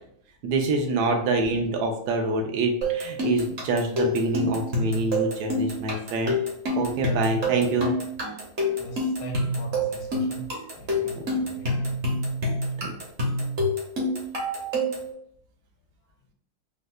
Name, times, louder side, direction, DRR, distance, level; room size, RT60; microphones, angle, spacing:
voice 1, 0.4-6.4 6.8-7.9 11.2-11.3 12.8-12.9, right 3 dB, 70° right, 3 dB, 1.0 m, -26 dB
sound 1, 2.8-15.1, equal, 50° right, 0.8 m, -27 dB
voice 2, 8.8-11.9, right 2 dB, 75° left, 2 dB, 1.6 m, -40 dB
5.2 x 2.0 x 2.4 m, 0.66 s
omnidirectional pair, 2.2 m